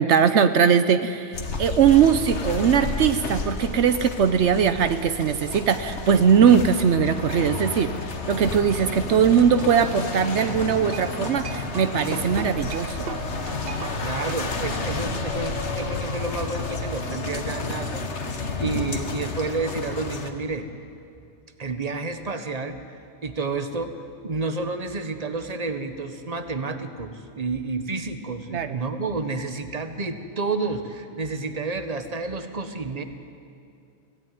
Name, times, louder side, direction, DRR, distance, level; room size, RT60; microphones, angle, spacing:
voice 1, 0.0-7.9 8.3-13.1 28.5-28.7, right 7 dB, 80° right, 11 dB, 1.1 m, -20 dB
Horse Carriage Through Edfu Egypt, 1.3-20.3, left 3 dB, 75° left, 1.8 m, -31 dB
sound 1, 8.6-14.5, right 6 dB, 60° right, 1.0 m, -39 dB
voice 2, 14.0-20.7 21.6-33.0, right 3 dB, 35° right, 8 dB, 1.4 m, -30 dB
24.0 x 17.0 x 9.4 m, 2.6 s
omnidirectional pair, 1.2 m